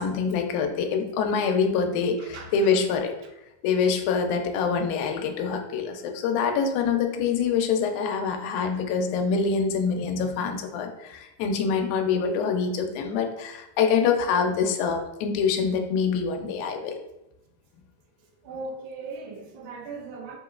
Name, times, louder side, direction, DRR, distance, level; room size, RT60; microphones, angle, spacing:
voice 1, 0.0-3.1 3.6-17.0, left 6 dB, 85° left, 4 dB, 2.0 m, -25 dB
voice 2, 2.2-2.5 18.4-20.4, right 3 dB, 85° right, 2 dB, 2.1 m, -38 dB
5.1 x 2.9 x 2.4 m, 0.90 s
omnidirectional pair, 3.4 m